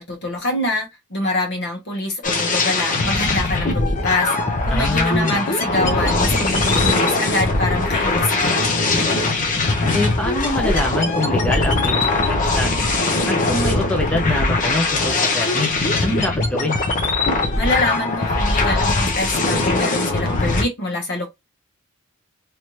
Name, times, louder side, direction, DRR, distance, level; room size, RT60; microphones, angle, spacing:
voice 1, 0.0-4.3 4.6-8.9 17.6-21.3, left 2 dB, 55° left, 1.3 m, -25 dB
sound 1, 2.2-20.6, left 2 dB, 40° left, 0.7 m, -20 dB
voice 2, 4.7-5.4 9.9-12.7 13.3-15.7 16.0-16.8, left 1 dB, 5° left, 0.6 m, -24 dB
3.2 x 2.7 x 3.1 m
head